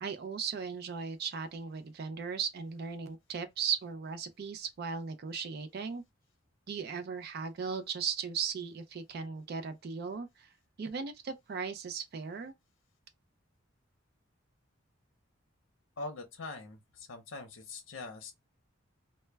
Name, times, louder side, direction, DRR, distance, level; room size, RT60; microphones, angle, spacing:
voice 1, 0.0-6.0 6.7-10.5 10.8-12.5, right 6 dB, 50° right, 0.4 m, -37 dB
voice 2, 16.0-18.3, left 3 dB, 70° left, 0.7 m, -43 dB
2.1 x 2.1 x 3.2 m
head